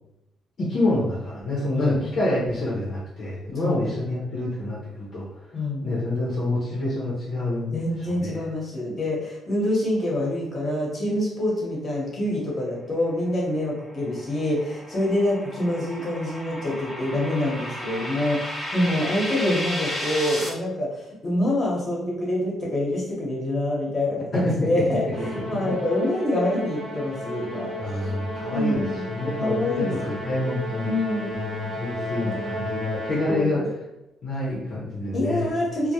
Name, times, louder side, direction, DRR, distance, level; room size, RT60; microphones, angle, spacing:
voice 1, 0.6-5.3 5.8-7.7 8.0-8.4 24.3-25.3 25.5-25.7 27.8-30.9 31.2-33.6 34.2-35.5, left 2 dB, 60° left, -5 dB, 0.7 m, -27 dB
voice 2, 5.5-5.9 7.7-25.0 25.5-27.7 28.5-29.0 29.4-30.2 30.8-31.3 32.2-32.5 33.3-33.7 35.1-35.9, left 1 dB, 35° left, -3 dB, 0.9 m, -26 dB
sound 1, 13.7-20.5, left 1 dB, 20° left, 0.5 m, -33 dB
Musical instrument, 25.1-33.6, equal, 60° right, 0.9 m, -33 dB
2.2 x 2.1 x 2.8 m, 0.91 s
cardioid pair, 90°, 0 cm